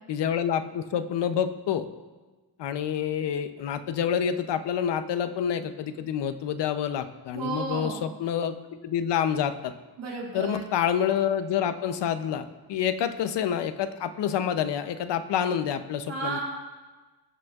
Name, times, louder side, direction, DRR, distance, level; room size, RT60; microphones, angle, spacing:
voice 1, 0.1-1.9 2.6-8.5 8.8-9.7 10.3-16.4, left 8 dB, 70° left, 10 dB, 0.7 m, -28 dB
voice 2, 7.3-8.0 10.0-10.7 16.1-16.4, right 4 dB, 90° right, -5 dB, 3.5 m, -33 dB
21.0 x 7.8 x 2.4 m, 1.3 s
wide cardioid pair, 160°, 44 cm